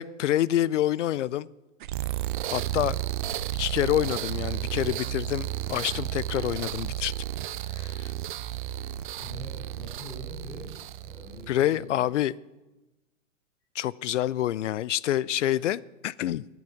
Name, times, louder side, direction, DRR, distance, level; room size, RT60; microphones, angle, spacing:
voice 1, 0.0-1.5 2.5-3.0 3.6-7.1 7.8-8.1 11.5-12.3 13.8-16.5, left 12 dB, 70° left, 0.5 m, -27 dB
sound 1, 1.8-11.8, right 13 dB, 40° right, 0.5 m, -33 dB
voice 2, 9.2-12.1, left 1 dB, 5° left, 3.5 m, -44 dB
9.3 x 9.2 x 7.2 m
hypercardioid pair, 135°, 39 cm